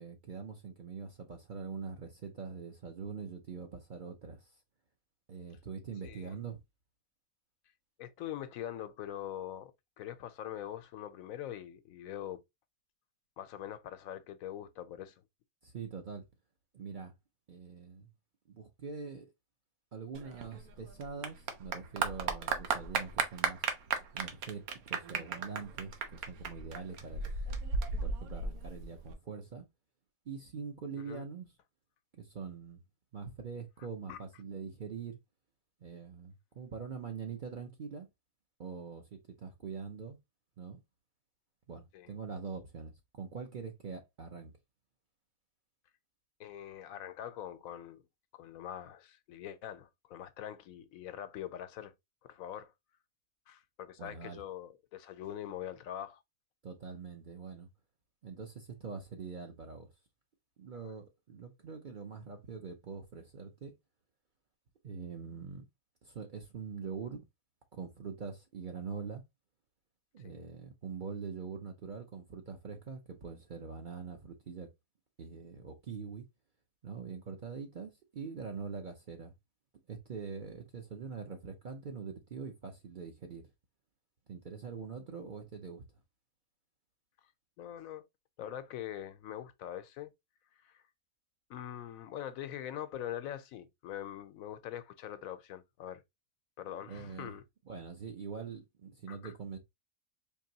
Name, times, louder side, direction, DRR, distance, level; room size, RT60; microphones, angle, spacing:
voice 1, 0.0-4.6 5.3-6.6 15.6-16.2 16.7-17.1 17.5-18.1 18.5-19.3 19.9-23.6 24.1-27.2 28.0-29.6 30.3-31.5 32.1-32.8 33.1-35.2 35.8-38.1 38.6-40.2 40.6-40.8 41.7-44.5 54.0-54.4 56.6-57.7 58.2-59.9 60.6-63.7 64.8-65.6 66.0-67.2 67.7-69.2 70.1-74.7 75.2-76.2 76.8-79.3 79.9-83.5 84.3-85.8 96.8-97.3 97.7-99.6, right 5 dB, 45° right, 0.7 m, -43 dB
voice 2, 6.0-6.3 8.0-9.7 10.0-12.4 13.4-15.2 31.0-31.3 34.1-34.2 41.9-42.1 46.4-48.0 48.3-51.9 52.2-52.7 53.5-56.2 60.7-60.9 70.2-70.4 87.6-88.0 88.4-90.1 90.5-90.8 91.5-96.0 96.6-97.4 99.1-99.3, left 11 dB, 75° left, 1.0 m, -43 dB
Clapping / Applause, 20.1-29.1, right 5 dB, 90° right, 1.2 m, -35 dB
4.6 x 2.9 x 2.8 m
omnidirectional pair, 1.5 m